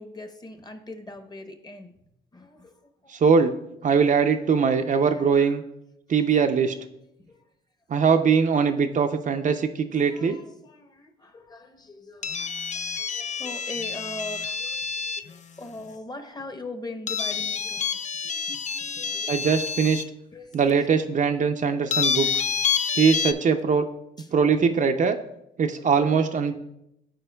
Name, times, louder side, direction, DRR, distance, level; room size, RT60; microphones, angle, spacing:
voice 1, 0.0-2.0 2.3-3.1 4.9-5.6 7.2-7.4 10.0-19.7 20.3-20.8 22.1-22.5 22.7-23.0 23.7-23.9 24.2-24.6 25.7-26.2, left 2 dB, 20° left, 8 dB, 0.8 m, -42 dB
voice 2, 3.1-3.5 3.8-5.6 6.1-6.8 7.9-10.4 19.3-20.0 20.5-22.4 23.0-23.8 24.3-25.2 25.6-26.6, right 6 dB, 40° right, 6 dB, 0.4 m, -21 dB
sound 1, 12.2-15.3 17.1-20.0 20.7-20.8 21.9-23.3, left 6 dB, 35° left, 0.4 m, -28 dB
12.5 x 4.5 x 2.2 m, 0.82 s
cardioid pair, 90°, 20 cm